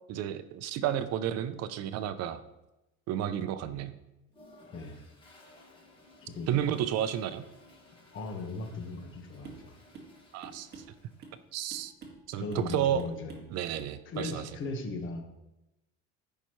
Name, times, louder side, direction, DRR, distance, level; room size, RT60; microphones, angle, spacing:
voice 1, 0.1-2.4 3.1-3.9 6.5-7.5 10.3-10.7 11.5-11.9 12.3-13.1 13.5-14.4, right 10 dB, 60° right, 12 dB, 0.6 m, -31 dB
Toilet flush, 4.3-11.5, left 2 dB, 15° left, 1.7 m, -58 dB
voice 2, 6.2-6.7 8.1-9.7 12.4-13.4 14.0-15.2, left 2 dB, 45° left, 4 dB, 1.4 m, -38 dB
sound 1, 9.4-9.7 9.9-10.1 10.4-11.4 11.7-12.2 12.5-12.7 13.0-13.5 13.8-14.0 14.3-14.4, right 4 dB, 35° right, 1.9 m, -48 dB
14.5 x 5.6 x 3.1 m, 0.95 s
cardioid pair, 145°, 29 cm